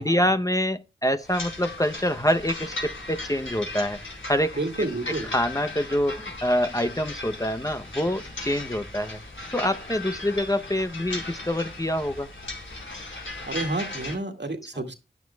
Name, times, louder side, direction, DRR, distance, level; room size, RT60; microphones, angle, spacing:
voice 1, 0.0-4.0 4.3-4.6 5.1-9.2 9.5-12.3, equal, 15° left, 0.7 m, -26 dB
sound 1, 1.2-14.2, left 2 dB, 80° left, 4.2 m, -37 dB
voice 2, 4.6-5.3 13.5-14.9, right 2 dB, 60° right, 2.1 m, -30 dB
15.5 x 10.5 x 2.3 m
wide cardioid pair, 50°, 20 cm